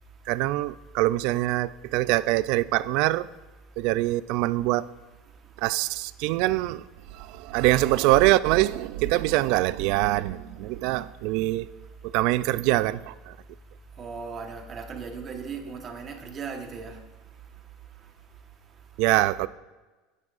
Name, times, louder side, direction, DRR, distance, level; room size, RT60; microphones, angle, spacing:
voice 1, 0.3-3.3 3.8-4.9 5.6-6.8 7.1-11.7 12.0-13.4 19.0-19.5, right 17 dB, 60° right, 0.3 m, -24 dB
voice 2, 14.0-16.9, right 5 dB, 25° right, 1.2 m, -37 dB
15.5 x 9.8 x 2.5 m
cardioid pair, 160°, 0 cm